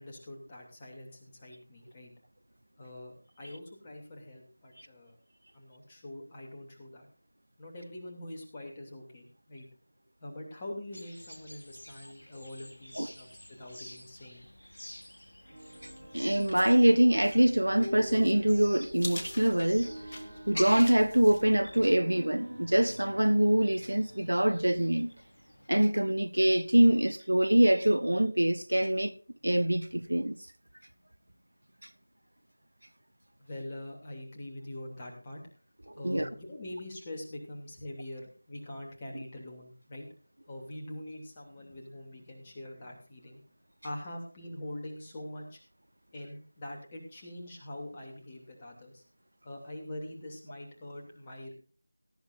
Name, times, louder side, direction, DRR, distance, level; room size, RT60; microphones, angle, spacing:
voice 1, 0.0-2.1 2.8-5.2 5.5-7.1 7.6-9.7 10.2-14.5 33.4-35.4 35.9-40.1 40.5-43.4 43.8-45.6 46.1-49.0 49.4-51.5, left 1 dB, 20° left, 2.8 m, -44 dB
sound 1, 10.9-25.7, left 1 dB, 60° left, 3.0 m, -48 dB
sound 2, 15.4-25.5, equal, 55° right, 3.8 m, -47 dB
sound 3, 15.7-22.0, left 2 dB, 40° left, 1.5 m, -47 dB
voice 2, 16.1-19.9 20.5-25.1 25.7-29.1 29.4-30.4 36.0-36.3, right 1 dB, 75° right, 0.9 m, -24 dB
18.0 x 11.5 x 2.6 m
figure-of-eight pair, 165°, 0 cm